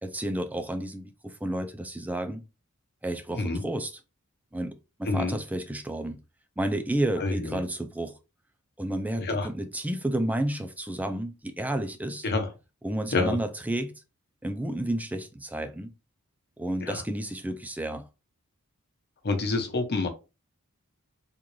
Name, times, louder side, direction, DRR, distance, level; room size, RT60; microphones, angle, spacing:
voice 1, 0.0-2.4 3.0-3.9 4.5-4.7 5.0-6.2 6.6-8.2 8.8-12.3 12.8-13.9 14.4-15.9 16.6-18.0, right 1 dB, 5° right, 0.4 m, -31 dB
voice 2, 5.0-5.4 7.2-7.6 9.2-9.5 12.2-12.5 13.1-13.4 16.8-17.0 19.2-20.1, left 3 dB, 50° left, 0.9 m, -27 dB
3.7 x 2.5 x 3.1 m
head